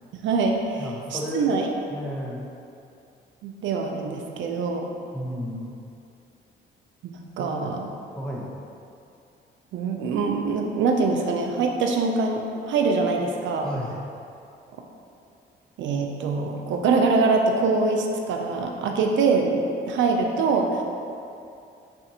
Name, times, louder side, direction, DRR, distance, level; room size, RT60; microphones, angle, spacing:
voice 1, 0.1-1.7 3.4-4.9 7.0-7.9 9.7-13.7 15.8-20.8, right 4 dB, 75° right, 3 dB, 0.4 m, -24 dB
voice 2, 0.8-1.6 1.9-2.5 5.1-5.7 7.4-7.7 8.2-8.5 13.6-14.0, equal, 5° left, -4 dB, 0.7 m, -32 dB
5.6 x 2.5 x 2.8 m, 2.5 s
cardioid pair, 90°, 20 cm